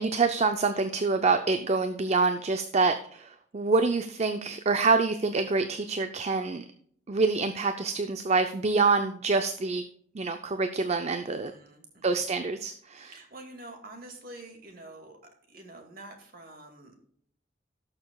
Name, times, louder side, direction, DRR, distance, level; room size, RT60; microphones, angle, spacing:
voice 1, 0.0-6.7 7.1-9.8 10.1-11.5 12.0-13.1, right 4 dB, 35° right, 8 dB, 0.5 m, -26 dB
voice 2, 11.3-12.3 12.9-15.2 15.5-16.9, right 2 dB, 50° right, 4 dB, 2.1 m, -47 dB
17.5 x 6.7 x 2.3 m, 0.62 s
head